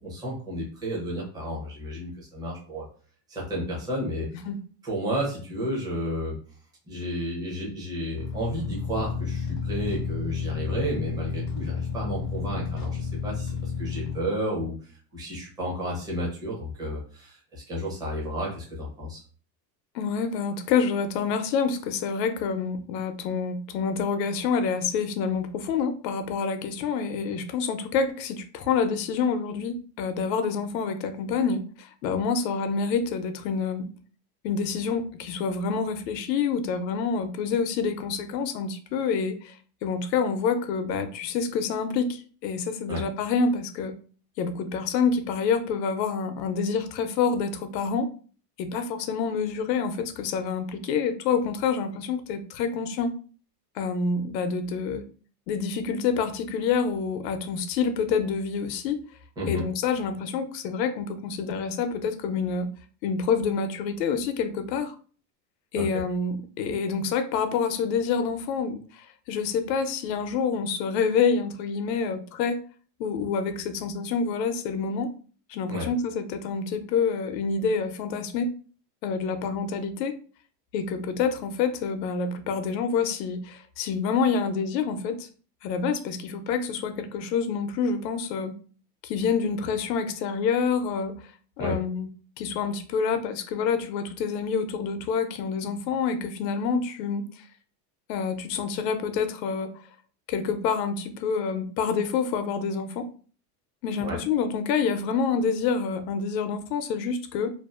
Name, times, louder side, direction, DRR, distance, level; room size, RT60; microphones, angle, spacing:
voice 1, 0.0-2.9 3.3-4.3 4.8-6.4 6.9-19.2 42.9-43.0 59.4-59.6 65.7-65.9 75.7-75.9 91.6-91.8 104.0-104.2, equal, 10° right, -4 dB, 0.6 m, -32 dB
sound 1, 8.2-14.2, left 5 dB, 40° left, 0.4 m, -31 dB
voice 2, 19.9-33.9 34.4-39.5 39.8-43.9 44.4-48.1 48.6-53.1 53.8-55.0 55.5-59.0 59.5-62.7 63.0-64.9 65.7-72.6 73.0-75.1 75.5-78.5 79.0-80.2 80.7-85.3 85.6-88.6 89.0-91.1 91.6-92.1 92.4-97.2 98.1-99.7 100.3-103.1 103.8-107.5, left 5 dB, 80° left, 8 dB, 0.6 m, -27 dB
2.6 x 2.4 x 2.3 m, 0.40 s
supercardioid pair, 150°, 50 cm